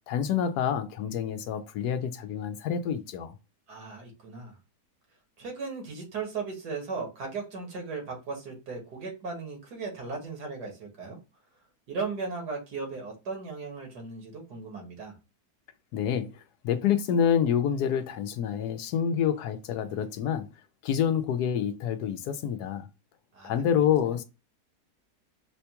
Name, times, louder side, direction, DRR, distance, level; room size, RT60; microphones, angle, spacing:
voice 1, 0.1-3.3 15.9-20.5 20.8-22.9 23.4-24.2, left 8 dB, 80° left, 1.1 m, -27 dB
voice 2, 3.7-4.6 5.4-11.2 11.9-15.1 23.3-24.2, right 4 dB, 85° right, 1.9 m, -37 dB
5.0 x 2.3 x 2.8 m
omnidirectional pair, 1.7 m